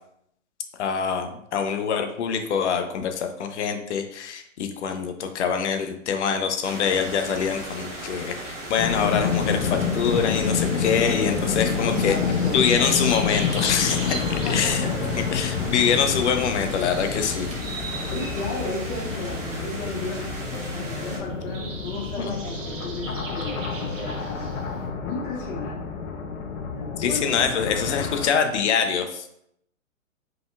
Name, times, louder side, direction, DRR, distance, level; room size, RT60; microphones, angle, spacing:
voice 1, 0.8-12.2 12.5-14.2 14.5-14.8 15.3-17.5 22.2-22.3 27.0-29.3, left 7 dB, 60° left, 7 dB, 0.7 m, -24 dB
sound 1, 6.6-21.2, right 1 dB, 15° right, 1.1 m, -37 dB
sound 2, 8.8-28.3, left 6 dB, 90° left, 0.8 m, -28 dB
sound 3, 11.4-24.9, right 3 dB, 70° right, 1.2 m, -38 dB
voice 2, 11.8-12.6 14.4-14.9 18.1-20.4 20.7-24.5 25.0-26.0 26.7-27.4, left 2 dB, 25° left, -5 dB, 1.3 m, -34 dB
4.8 x 3.9 x 2.3 m, 0.73 s
hypercardioid pair, 135°, 40 cm